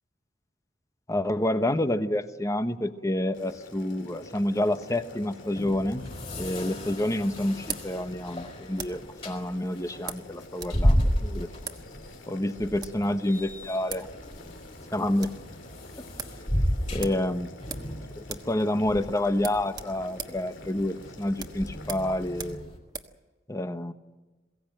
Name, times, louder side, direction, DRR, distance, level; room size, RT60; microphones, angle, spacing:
voice 1, 1.1-6.0 6.4-11.5 12.3-14.1 14.9-15.3 16.0-16.1 16.5-17.5 18.3-22.7 23.5-23.9, left 1 dB, 15° left, 9 dB, 1.1 m, -28 dB
Boiling, 3.3-22.6, left 2 dB, 80° left, 2.5 m, -48 dB
sound 1, 4.5-22.8, equal, 35° left, 4.8 m, -33 dB
sound 2, 6.2-9.1 10.1-10.8 11.1-11.2 11.6-11.9 12.6-13.1 13.6-13.7 13.9-14.1 14.4-14.5 14.8-15.4 15.8-15.9 16.2-16.4 17.0-18.0 18.2-18.6 18.8-19.0 19.4-23.2, right 5 dB, 20° right, 1.3 m, -40 dB
22.0 x 17.0 x 9.0 m, 1.2 s
head